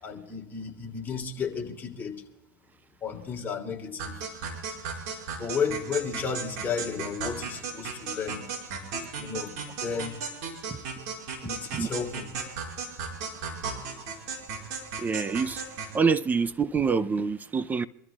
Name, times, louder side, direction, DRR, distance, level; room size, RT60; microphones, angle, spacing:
voice 1, 0.0-2.2 3.0-4.2 5.4-8.4 9.2-10.1 11.4-12.3, left 6 dB, 20° left, 2.8 m, -33 dB
sound 1, 4.0-16.0, right 5 dB, 60° right, 5.1 m, -36 dB
voice 2, 15.0-15.7 15.9-17.9, right 5 dB, 20° right, 0.6 m, -26 dB
26.5 x 13.5 x 2.4 m
supercardioid pair, 125°, 9 cm